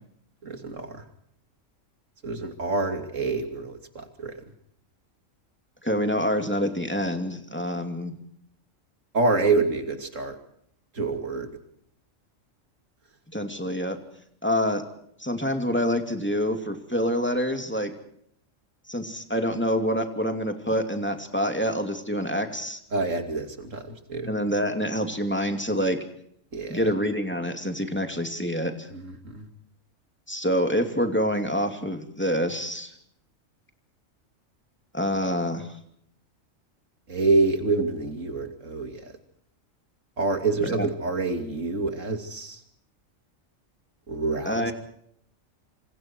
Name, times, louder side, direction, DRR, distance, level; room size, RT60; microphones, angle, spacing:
voice 1, 0.4-1.0 2.2-4.3 9.1-10.4 10.9-11.5 22.9-23.8 24.1-24.3 26.5-26.8 28.9-29.5 37.1-39.0 40.2-42.6 44.1-44.6, right 3 dB, 70° right, 6 dB, 3.2 m, -27 dB
voice 2, 5.8-8.2 13.3-14.0 14.4-14.8 15.2-17.9 18.9-22.8 24.3-26.0 26.7-28.9 30.3-32.9 34.9-35.7 40.6-40.9 44.5-44.7, equal, 10° left, 5 dB, 2.7 m, -26 dB
27.0 x 26.0 x 4.6 m, 0.68 s
omnidirectional pair, 1.3 m